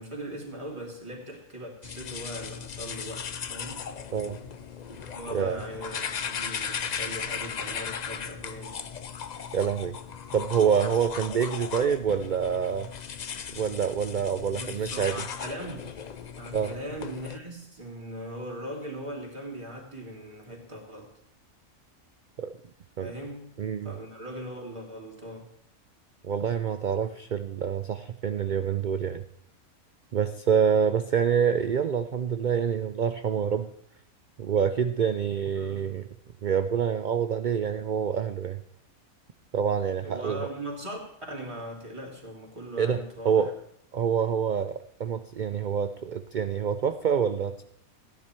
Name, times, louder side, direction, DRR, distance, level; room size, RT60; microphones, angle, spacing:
voice 1, 0.0-3.9 5.0-8.8 14.6-15.9 16.4-21.1 23.0-23.5 23.8-25.5 35.5-35.8 40.0-41.0 41.3-43.5, equal, 20° right, -1 dB, 2.8 m, -39 dB
sound 1, 1.8-17.4, left 7 dB, 55° left, 0.4 m, -37 dB
voice 2, 9.5-9.9 10.3-12.9 13.5-15.2 16.5-16.7 22.4-22.5 23.0-23.1 23.6-23.9 26.2-29.2 30.1-33.7 34.4-36.1 36.4-38.6 39.5-40.5 42.8-43.5 43.9-47.6, right 7 dB, 75° right, 10 dB, 0.4 m, -26 dB
15.5 x 10.0 x 4.5 m, 0.71 s
omnidirectional pair, 1.4 m